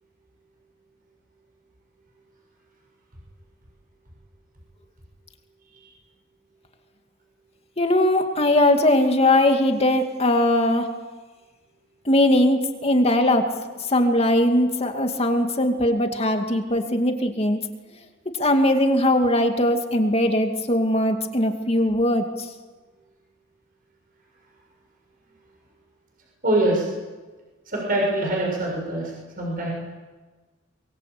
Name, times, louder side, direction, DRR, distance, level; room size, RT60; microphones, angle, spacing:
voice 1, 7.8-10.9 12.1-13.5 13.9-17.6 18.4-22.5, left 1 dB, 30° left, 5 dB, 2.4 m, -20 dB
voice 2, 26.4-26.9 27.7-29.7, right 1 dB, 45° right, -2 dB, 6.9 m, -24 dB
24.0 x 22.5 x 8.5 m, 1.3 s
head